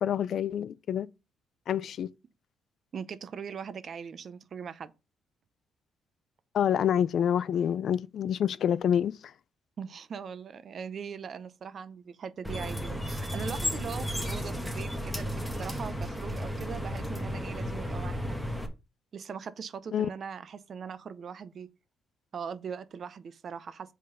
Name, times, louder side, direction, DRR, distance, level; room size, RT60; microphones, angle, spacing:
voice 1, 0.0-1.1 1.7-2.1 6.5-9.3 19.9-20.1, left 9 dB, 65° left, 0.3 m, -27 dB
voice 2, 2.9-4.9 9.8-18.4 19.1-21.7 22.3-23.9, right 6 dB, 50° right, 0.6 m, -40 dB
sound 1, 12.4-18.7, equal, ahead, 1.1 m, -33 dB
5.5 x 3.7 x 5.0 m
cardioid pair, 90°, 0 cm